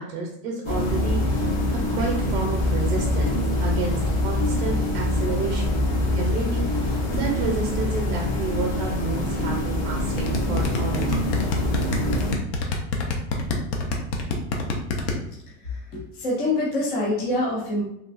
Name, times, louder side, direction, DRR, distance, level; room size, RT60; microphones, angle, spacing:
voice 1, 0.0-5.9 6.2-11.3, right 3 dB, 50° right, 0 dB, 0.7 m, -31 dB
sound 1, 0.6-12.3, left 1 dB, 75° left, 1.2 m, -24 dB
sound 2, 10.2-15.1, left 4 dB, 55° left, 0.6 m, -26 dB
voice 2, 15.6-17.8, left 2 dB, 25° left, -5 dB, 0.3 m, -26 dB
3.2 x 2.3 x 2.4 m, 0.81 s
supercardioid pair, 170°, 41 cm